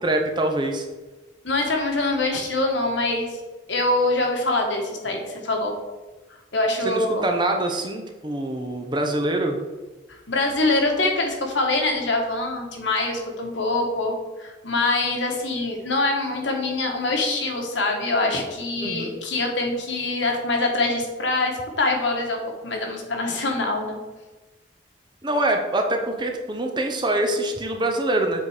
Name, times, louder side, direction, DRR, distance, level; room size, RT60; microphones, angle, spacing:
voice 1, 0.0-0.9 6.8-9.6 18.8-19.1 25.2-28.4, right 1 dB, 25° right, 3 dB, 0.8 m, -24 dB
voice 2, 1.4-3.4 3.7-5.7 6.5-7.2 10.1-24.0, left 2 dB, 70° left, 2 dB, 1.5 m, -24 dB
7.5 x 4.2 x 5.0 m, 1.2 s
head